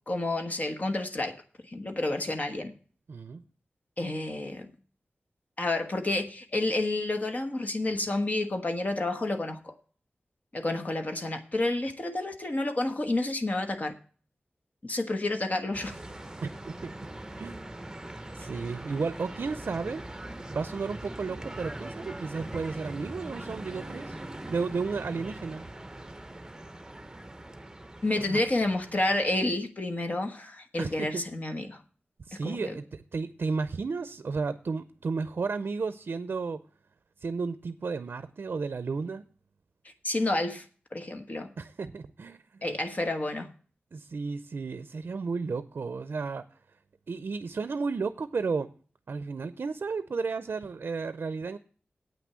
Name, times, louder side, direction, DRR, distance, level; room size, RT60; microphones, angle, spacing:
voice 1, 0.1-1.3 1.7-2.7 4.0-4.7 5.6-9.7 10.5-13.9 14.8-16.0 28.0-31.8 32.4-32.7 40.0-40.6 40.9-41.5 42.6-43.5, left 2 dB, 45° left, 6 dB, 1.2 m, -30 dB
voice 2, 3.1-3.4 16.4-16.9 17.4-17.6 18.3-20.0 20.5-24.2 24.5-25.6 28.2-28.4 30.8-31.3 32.3-36.6 37.2-39.2 41.6-42.6 43.9-46.5 47.1-48.7 49.1-51.6, right 4 dB, 70° right, 12 dB, 0.5 m, -33 dB
sound 1, 15.7-29.4, right 1 dB, 15° right, 0.8 m, -42 dB
8.7 x 6.1 x 8.2 m, 0.42 s
wide cardioid pair, 100°, 4 cm